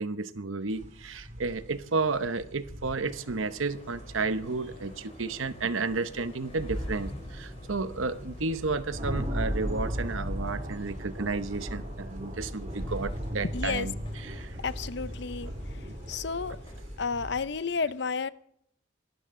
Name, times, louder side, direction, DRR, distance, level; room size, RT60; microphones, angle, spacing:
voice 1, 0.0-14.6 15.9-16.0, right 3 dB, 85° right, 0.9 m, -32 dB
sound 1, 0.7-17.5, equal, 35° right, 2.7 m, -38 dB
sound 2, 3.1-16.8, left 1 dB, 30° left, 3.8 m, -52 dB
voice 2, 13.5-13.9 14.6-15.5 16.1-16.6 17.0-18.3, left 5 dB, 60° left, 0.6 m, -31 dB
24.0 x 12.5 x 3.8 m
head